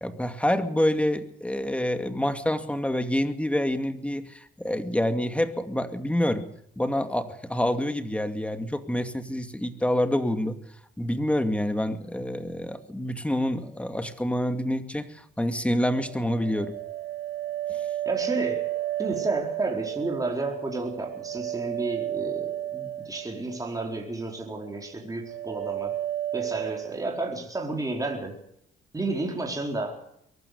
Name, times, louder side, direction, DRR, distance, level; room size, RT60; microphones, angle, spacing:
voice 1, 0.0-6.5 6.8-10.6 11.0-16.7 17.7-17.8, left 1 dB, 5° left, 8 dB, 2.4 m, -27 dB
sound 1, 15.9-24.1 24.4-24.9 25.2-27.0, right 13 dB, 85° right, 3.5 m, -33 dB
voice 2, 18.0-18.6 19.0-25.9 26.3-28.4 28.9-30.0, right 2 dB, 15° right, 1 dB, 4.5 m, -31 dB
23.0 x 12.5 x 9.6 m, 0.72 s
cardioid pair, 90°, 20 cm